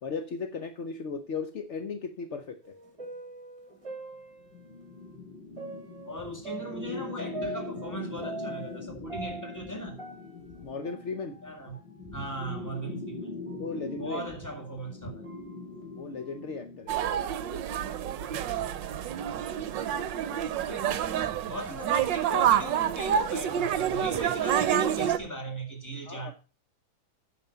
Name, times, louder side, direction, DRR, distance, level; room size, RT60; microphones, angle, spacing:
voice 1, 0.0-2.7 10.6-11.4 13.6-14.2 16.0-17.1 26.1-26.3, left 5 dB, 60° left, 0.7 m, -36 dB
sound 1, 2.6-4.8 5.6-8.8 9.1-11.5 11.7-11.8 12.6-12.7 13.5-13.7 14.3-14.4 15.2-15.5, right 2 dB, 15° right, 2.3 m, -42 dB
sound 2, 4.4-16.9, left 3 dB, 25° left, 3.4 m, -42 dB
voice 2, 6.0-10.0 11.4-11.8 12.0-13.3 14.0-15.3 18.2-18.7 20.6-26.3, right 1 dB, 10° left, 1.9 m, -38 dB
sound 3, 16.9-25.2, right 9 dB, 70° right, 1.4 m, -28 dB
9.2 x 6.6 x 5.6 m
omnidirectional pair, 2.2 m